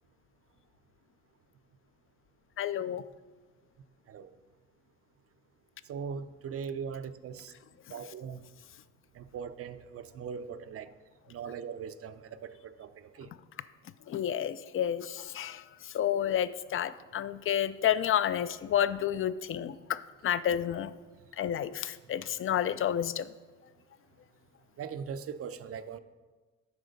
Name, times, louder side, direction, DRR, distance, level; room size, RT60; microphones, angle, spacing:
voice 1, 2.6-3.0 14.1-20.9 21.4-23.3, left 10 dB, 45° left, 15 dB, 0.4 m, -30 dB
voice 2, 5.9-7.5 7.9-8.4 9.2-10.9 11.3-12.9 13.2-13.3 24.8-26.0, right 6 dB, 50° right, 12 dB, 0.5 m, -40 dB
7.9 x 5.0 x 5.2 m, 1.3 s
cardioid pair, 90°, 30 cm